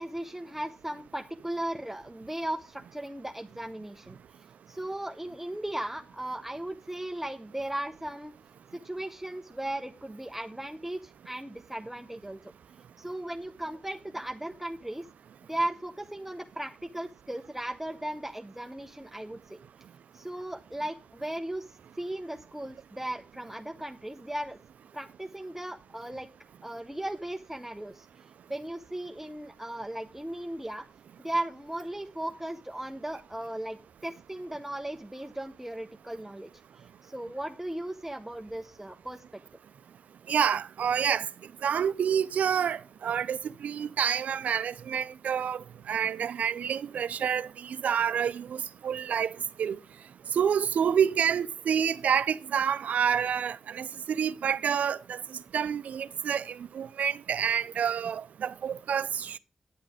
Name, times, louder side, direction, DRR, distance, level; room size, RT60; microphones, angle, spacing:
voice 1, 0.0-4.2 4.7-8.3 8.7-12.4 13.0-15.0 15.5-19.6 20.1-24.6 24.9-26.3 26.6-30.9 31.2-36.5 36.8-39.4, right 1 dB, 10° right, 0.9 m, -37 dB
voice 2, 40.3-41.3 41.6-49.8 50.3-59.4, right 8 dB, 85° right, 0.4 m, -28 dB
10.0 x 8.1 x 4.9 m
cardioid pair, 40°, 2 cm